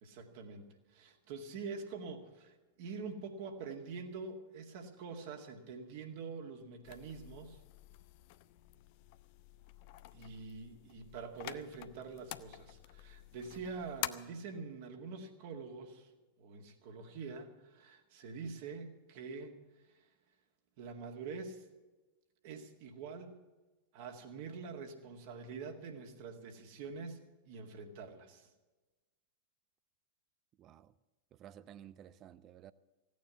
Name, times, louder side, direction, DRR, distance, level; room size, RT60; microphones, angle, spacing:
voice 1, 0.0-7.6 10.1-16.1 16.4-19.5 19.9-20.1 20.8-21.7 22.4-23.4 23.9-27.2 27.5-28.5, right 4 dB, 50° right, 2.0 m, -45 dB
sound 1, 6.8-14.1, left 16 dB, 45° left, 0.6 m, -48 dB
voice 2, 30.6-30.9 31.3-32.7, right 10 dB, 30° right, 0.6 m, -54 dB
16.0 x 9.4 x 8.3 m
figure-of-eight pair, 90°, 0 cm